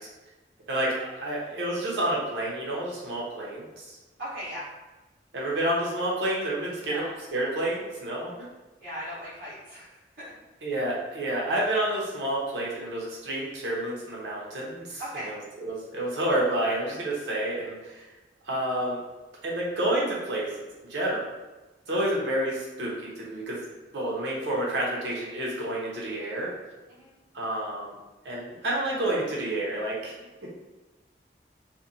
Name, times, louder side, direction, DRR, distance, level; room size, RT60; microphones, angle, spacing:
voice 1, 0.7-4.0 5.3-8.3 10.6-18.0 18.5-19.0 19.4-20.5 20.9-21.3 21.9-23.6 23.9-26.5 27.3-27.9 28.2-30.1, right 1 dB, 85° right, -4 dB, 0.8 m, -29 dB
voice 2, 4.2-4.7 6.6-7.1 8.8-10.3 15.0-15.3 21.9-22.0 26.9-27.1, equal, 65° right, -13 dB, 1.0 m, -38 dB
2.6 x 2.1 x 2.6 m, 1.1 s
head